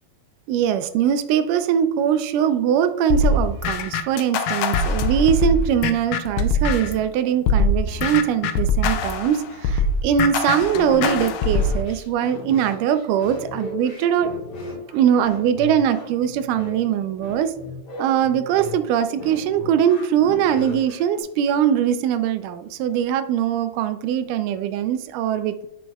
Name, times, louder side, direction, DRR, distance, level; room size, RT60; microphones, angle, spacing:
voice 1, 0.5-14.3 14.9-17.5 18.0-25.7, right 9 dB, 90° right, 11 dB, 2.1 m, -21 dB
sound 1, 3.1-7.0 7.5-11.8, left 3 dB, 85° left, 2.2 m, -22 dB
sound 2, 11.5-21.2, left 3 dB, 65° left, 2.8 m, -37 dB
10.0 x 6.2 x 2.3 m, 0.84 s
omnidirectional pair, 3.6 m